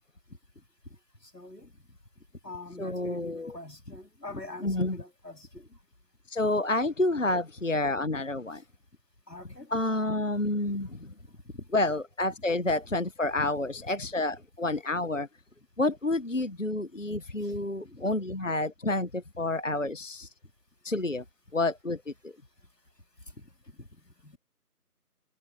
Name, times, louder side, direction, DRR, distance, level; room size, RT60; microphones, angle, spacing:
voice 1, 1.3-1.7 2.4-5.7 9.3-9.8 10.6-10.9 11.5-11.7 12.7-12.8 13.4-13.5 17.4-17.6 17.8-18.0 23.4-23.5 23.7-24.4, left 2 dB, 85° left, 3.7 m, -44 dB
voice 2, 2.8-3.5 4.6-5.0 6.3-8.6 9.7-10.9 11.7-15.3 15.8-20.3 20.8-21.2 21.5-22.3, left 2 dB, 50° left, 1.2 m, -29 dB
figure-of-eight pair, 175°, 48 cm